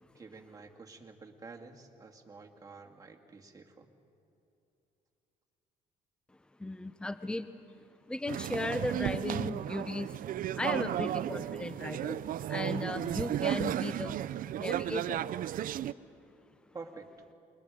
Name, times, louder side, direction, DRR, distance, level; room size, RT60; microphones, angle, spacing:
voice 1, 0.1-3.9 16.7-17.1, right 4 dB, 20° right, 1 dB, 2.3 m, -49 dB
voice 2, 6.6-7.5 8.1-10.1 10.6-12.2 12.5-14.2 14.6-15.2, left 2 dB, 5° left, 11 dB, 0.7 m, -36 dB
sound 1, 8.3-15.9, right 11 dB, 55° right, 0.6 m, -34 dB
28.0 x 23.0 x 5.2 m, 2.9 s
cardioid pair, 110°, 17 cm